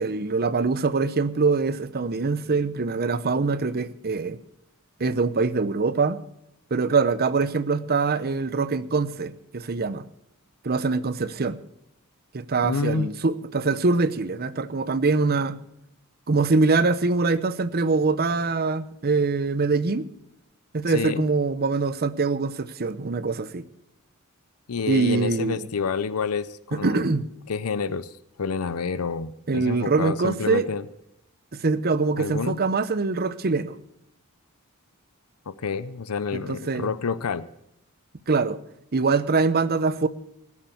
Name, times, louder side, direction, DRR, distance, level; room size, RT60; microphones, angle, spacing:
voice 1, 0.0-4.4 5.0-6.2 6.7-10.1 10.6-11.6 12.3-15.6 16.3-20.1 20.7-23.6 24.9-25.7 26.7-27.3 29.5-30.7 31.5-33.8 36.3-36.9 38.3-38.6 38.9-40.1, right 4 dB, 45° right, 15 dB, 0.7 m, -24 dB
voice 2, 12.6-13.1 20.9-21.2 24.7-27.1 27.5-28.1 28.4-30.9 32.2-32.6 35.5-37.4, left 5 dB, 85° left, 16 dB, 0.6 m, -28 dB
17.5 x 7.4 x 8.1 m, 0.78 s
head